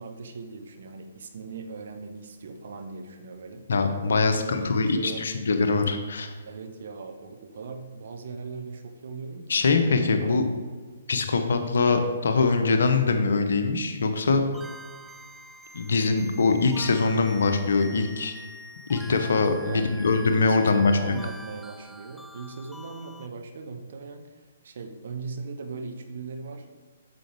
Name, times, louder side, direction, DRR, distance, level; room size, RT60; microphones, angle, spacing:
voice 1, 0.0-3.7 4.1-5.2 6.4-9.7 10.2-10.4 19.6-19.9 20.3-24.2 24.6-26.7, right 4 dB, 55° right, 6 dB, 1.0 m, -39 dB
voice 2, 3.7-6.3 9.5-10.5 11.1-14.4 15.7-18.3 18.9-21.2, left 4 dB, 60° left, 6 dB, 0.9 m, -23 dB
sound 1, 14.5-23.3, equal, ahead, 0.4 m, -45 dB
9.0 x 6.9 x 3.5 m, 1.4 s
figure-of-eight pair, 125°, 0 cm